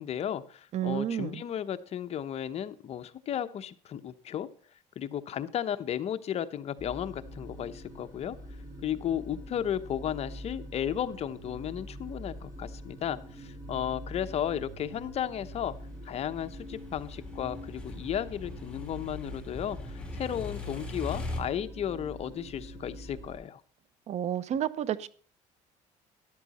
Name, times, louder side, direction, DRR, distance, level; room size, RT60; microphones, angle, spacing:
voice 1, 0.0-4.5 5.0-8.4 8.8-15.7 16.0-23.6, left 10 dB, 50° left, 11 dB, 0.9 m, -34 dB
voice 2, 0.7-1.4 24.1-25.1, right 10 dB, 55° right, 18 dB, 0.7 m, -30 dB
sound 1, 6.8-23.4, equal, 25° right, 6.9 m, -45 dB
sound 2, 15.9-21.4, left 2 dB, 5° left, 3.3 m, -40 dB
13.5 x 11.5 x 4.2 m, 0.41 s
cardioid pair, 115°, 14 cm